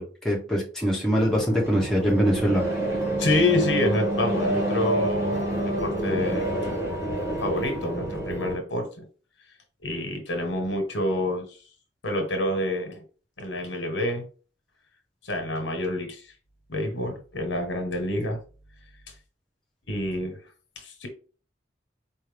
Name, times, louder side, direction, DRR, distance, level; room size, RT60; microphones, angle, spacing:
voice 1, 0.0-2.7, equal, 5° left, -4 dB, 1.3 m, -23 dB
sound 1, 1.2-8.6, right 1 dB, 15° right, 1.7 m, -28 dB
voice 2, 3.2-6.5 7.4-9.0 9.8-11.6 12.0-13.0 13.4-14.2 15.2-16.3 16.7-18.4 19.9-20.4 20.7-21.1, left 1 dB, 85° left, 4 dB, 1.3 m, -27 dB
4.6 x 2.8 x 3.4 m, 0.37 s
head